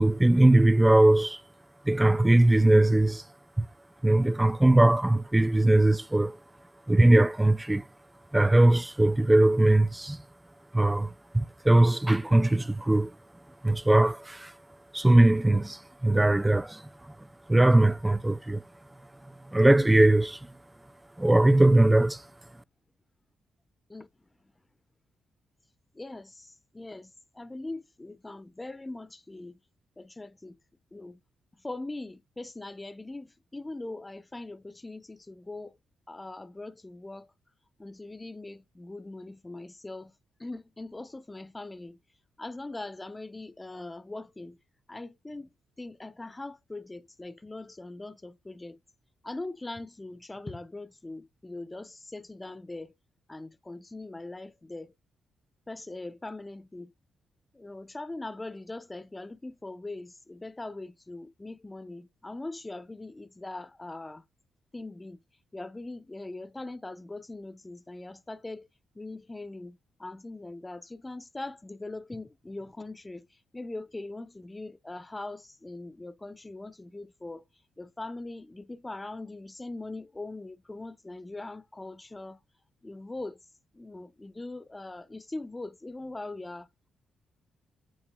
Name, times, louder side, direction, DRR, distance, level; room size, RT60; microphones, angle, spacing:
voice 1, 0.0-1.4 1.9-3.2 3.6-3.7 4.0-6.4 6.9-7.8 8.3-10.2 10.7-13.1 13.6-14.5 14.9-16.8 17.5-18.6 19.5-20.4 21.2-22.2, right 1 dB, 15° right, 0.4 m, -21 dB
voice 2, 25.9-29.6 30.0-30.6 30.9-31.2 31.6-35.8 36.1-37.3 37.8-40.1 40.4-42.0 42.4-44.6 44.9-45.5 45.8-48.8 49.2-52.9 53.3-54.9 55.7-56.9 57.5-64.2 64.7-65.2 65.5-68.7 68.9-73.3 73.5-77.4 77.8-82.4 82.8-83.4 83.7-86.7, left 2 dB, 20° left, 0.8 m, -41 dB
8.8 x 7.9 x 2.2 m
hypercardioid pair, 45°, 0 cm